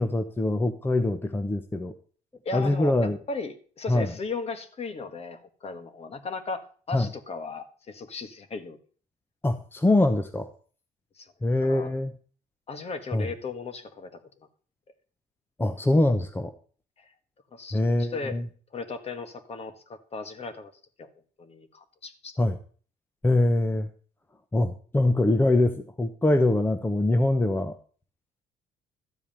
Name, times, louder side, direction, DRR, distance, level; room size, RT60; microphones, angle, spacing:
voice 1, 0.0-1.9 2.5-3.2 3.9-4.1 6.9-7.1 9.4-10.5 11.4-12.1 13.1-13.3 15.6-16.5 17.7-18.5 22.4-22.6 23.2-23.9 24.5-27.8, left 2 dB, 10° left, 8 dB, 0.9 m, -23 dB
voice 2, 2.4-8.8 11.2-11.3 11.6-11.9 12.7-14.2 17.0-17.1 17.5-18.4 18.7-20.7 21.0-21.1 21.4-22.4, left 4 dB, 35° left, 10 dB, 1.6 m, -36 dB
13.0 x 4.9 x 8.8 m, 0.42 s
cardioid pair, 110°, 17 cm